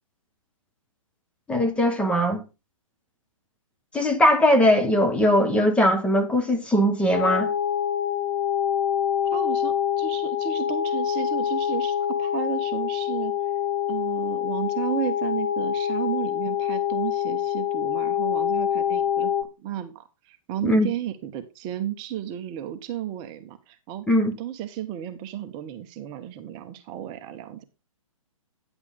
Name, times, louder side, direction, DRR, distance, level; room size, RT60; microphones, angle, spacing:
voice 1, 1.5-2.4 3.9-7.5 20.6-20.9 24.1-24.3, equal, 5° left, 1.0 m, -20 dB
sound 1, 7.1-19.4, left 10 dB, 55° left, 1.7 m, -26 dB
voice 2, 9.2-13.3 13.9-19.3 19.6-24.1 24.4-27.6, right 11 dB, 25° right, 1.0 m, -33 dB
9.8 x 8.0 x 3.6 m
figure-of-eight pair, 130°, 18 cm